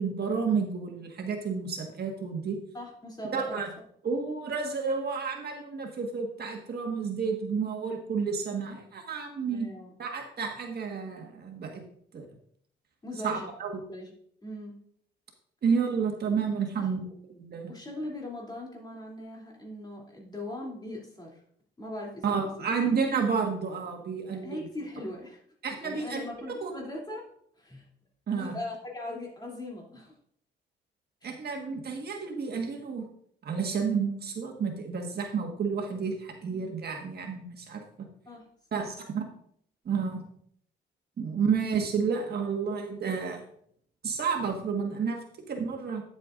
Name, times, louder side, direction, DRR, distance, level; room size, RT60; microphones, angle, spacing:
voice 1, 0.0-2.6 3.3-3.7 4.0-9.7 10.0-11.8 12.1-12.3 13.2-13.8 15.6-17.0 17.3-17.7 22.2-24.7 25.6-26.2 26.6-26.7 28.3-28.5 31.2-33.0 33.4-37.8 38.7-39.2 39.8-40.2 41.2-43.4 44.0-45.2 45.5-46.0, right 5 dB, 55° right, 2 dB, 1.6 m, -30 dB
voice 2, 2.7-3.6 9.5-9.9 13.0-13.5 13.9-14.1 14.4-14.8 16.7-16.9 17.7-21.4 21.8-22.7 24.3-25.4 25.8-27.3 27.6-27.8 28.4-30.2 31.2-31.3 38.3-38.9, left 1 dB, 20° left, -2 dB, 2.9 m, -40 dB
9.6 x 8.2 x 2.5 m, 0.64 s
cardioid pair, 90°, 20 cm